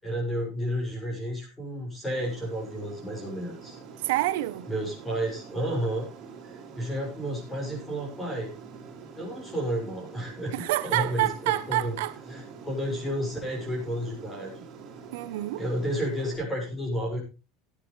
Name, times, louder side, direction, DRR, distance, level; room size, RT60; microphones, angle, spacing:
voice 1, 0.0-3.8 4.7-6.1 6.4-8.5 9.1-10.5 10.8-11.9 12.3-14.6 15.6-17.2, equal, 10° left, 6.8 m, -31 dB
Aircraft, 2.1-16.4, right 5 dB, 40° right, 4.4 m, -46 dB
voice 2, 4.0-4.7 10.5-12.1 15.1-15.6, right 17 dB, 85° right, 1.0 m, -27 dB
17.0 x 10.0 x 3.4 m
supercardioid pair, 145°, 0 cm